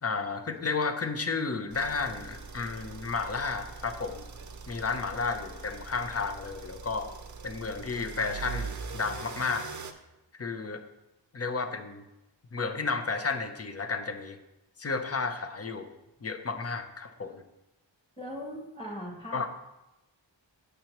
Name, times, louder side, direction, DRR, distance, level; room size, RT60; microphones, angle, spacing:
voice 1, 0.0-4.2 4.7-7.1 7.4-9.7 10.4-10.8 11.3-12.0 12.5-14.4 14.8-15.9 16.2-17.4 19.3-19.5, left 4 dB, 35° left, 8 dB, 0.7 m, -32 dB
sound 1, 1.7-9.9, right 5 dB, 40° right, 0.6 m, -42 dB
voice 2, 18.2-19.5, equal, 15° left, -3 dB, 2.4 m, -39 dB
8.4 x 6.6 x 3.0 m, 0.96 s
wide cardioid pair, 85°, 45 cm